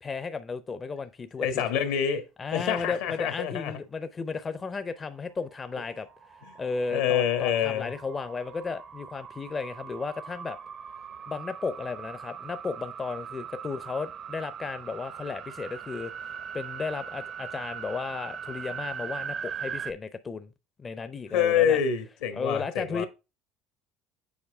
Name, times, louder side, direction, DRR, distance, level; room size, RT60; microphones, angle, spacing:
voice 1, 0.0-1.6 2.4-6.1 6.6-10.6 11.3-20.5 20.8-21.8 22.3-23.1, left 4 dB, 30° left, 0.5 m, -34 dB
voice 2, 1.4-2.3 2.5-3.7 6.4-6.5 6.9-7.9 21.3-23.1, left 9 dB, 80° left, 1.3 m, -26 dB
sound 1, 5.5-19.9, right 7 dB, 45° right, 0.6 m, -40 dB
7.2 x 4.6 x 3.4 m
supercardioid pair, 90°, 0 cm